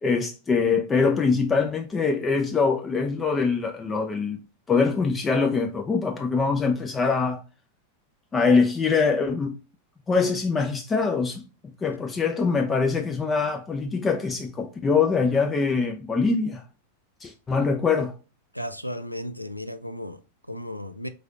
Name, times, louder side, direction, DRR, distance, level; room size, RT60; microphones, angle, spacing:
voice 1, 0.0-4.4 4.7-7.4 8.3-9.6 10.1-11.4 11.8-16.6 17.2-18.1, left 4 dB, 20° left, 0.4 m, -23 dB
voice 2, 18.5-21.1, equal, 90° left, 0.3 m, -35 dB
3.9 x 3.2 x 2.3 m
figure-of-eight pair, 90°, 0 cm